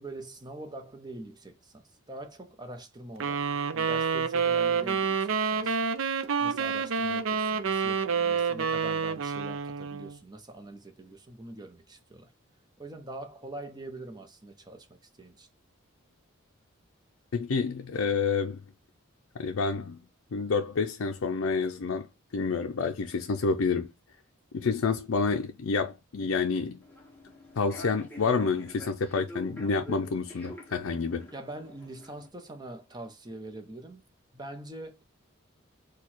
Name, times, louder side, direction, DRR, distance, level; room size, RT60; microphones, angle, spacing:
voice 1, 0.0-5.8 6.4-12.3 12.8-15.5 31.3-34.0 34.3-35.0, right 1 dB, 20° right, 0.8 m, -44 dB
sound 1, 3.2-10.2, right 6 dB, 70° right, 0.5 m, -28 dB
voice 2, 17.3-18.6 19.4-20.0 20.3-22.1 22.3-23.9 24.5-26.8 27.6-31.3, left 4 dB, 70° left, 0.5 m, -28 dB
Human voice / Subway metro underground, 26.8-32.3, left 1 dB, 10° left, 1.0 m, -46 dB
4.5 x 2.3 x 4.3 m
head